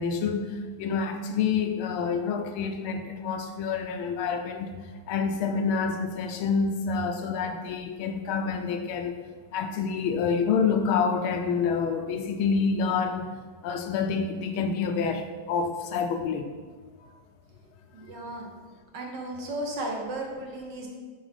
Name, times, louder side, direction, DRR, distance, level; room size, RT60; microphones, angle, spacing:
voice 1, 0.0-4.8 5.1-9.2 9.5-13.3 13.6-16.5, left 5 dB, 80° left, 6 dB, 1.4 m, -27 dB
voice 2, 17.9-18.5 18.9-20.9, right 1 dB, 60° right, 0 dB, 1.5 m, -34 dB
6.4 x 4.3 x 5.0 m, 1.5 s
omnidirectional pair, 2.3 m